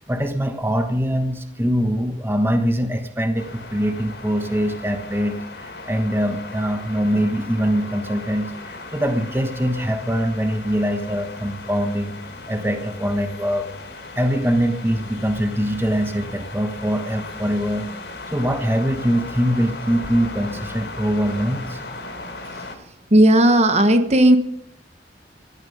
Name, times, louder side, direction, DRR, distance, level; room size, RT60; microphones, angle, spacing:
voice 1, 0.1-12.2 12.5-13.7 14.1-17.9 18.3-21.8, equal, 15° right, 6 dB, 1.2 m, -23 dB
sound 1, 3.3-22.7, left 3 dB, 85° left, 3.8 m, -37 dB
voice 2, 23.1-24.4, right 1 dB, 40° right, 9 dB, 1.3 m, -14 dB
17.5 x 13.0 x 5.5 m, 0.75 s
head